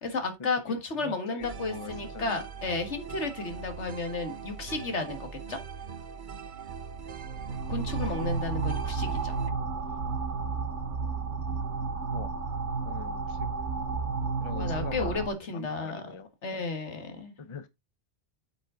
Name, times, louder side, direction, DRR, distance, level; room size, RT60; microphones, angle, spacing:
voice 1, 0.0-5.6 7.7-9.3 14.5-16.1 16.4-17.3, left 3 dB, 80° left, 2.0 m, -33 dB
voice 2, 1.0-2.4 8.0-8.3 12.1-12.3 12.9-13.5 14.4-16.3 17.4-17.7, left 5 dB, 30° left, 0.7 m, -43 dB
sound 1, 1.4-9.5, right 6 dB, 50° right, 0.8 m, -42 dB
sound 2, 6.9-15.3, right 4 dB, 90° right, 1.6 m, -32 dB
8.5 x 5.3 x 3.8 m
omnidirectional pair, 1.2 m